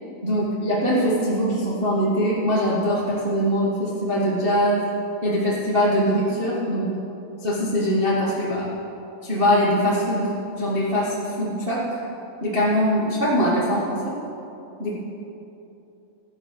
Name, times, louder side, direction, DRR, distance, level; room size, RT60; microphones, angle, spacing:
voice 1, 0.2-4.8 5.2-6.9 7.4-8.6 9.2-12.0 12.4-14.1 14.8-14.9, equal, 65° right, -7 dB, 0.5 m, -22 dB
12.5 x 7.2 x 5.7 m, 2.8 s
omnidirectional pair, 4.1 m